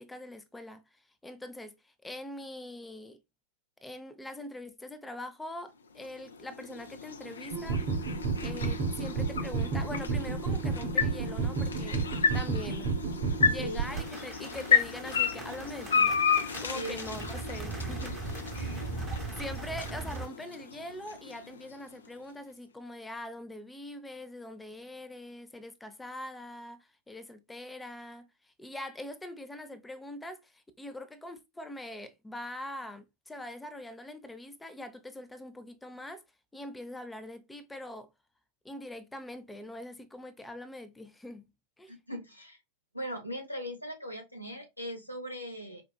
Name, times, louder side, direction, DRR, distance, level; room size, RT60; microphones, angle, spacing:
voice 1, 0.0-3.2 3.8-7.8 8.4-12.1 12.3-12.9 13.5-16.2 16.6-18.2 18.5-18.8 19.4-36.2 36.5-38.1 38.6-41.5 41.8-41.9, left 1 dB, 5° left, 0.4 m, -43 dB
sound 1, 5.9-22.1, left 6 dB, 70° left, 0.4 m, -33 dB
sound 2, 7.5-14.1, right 4 dB, 50° right, 0.6 m, -31 dB
sound 3, 13.9-20.3, right 3 dB, 15° right, 0.8 m, -39 dB
voice 2, 18.5-18.8 41.9-42.6 42.9-45.8, equal, 90° left, 0.8 m, -39 dB
4.5 x 2.3 x 2.2 m
figure-of-eight pair, 90°, 0 cm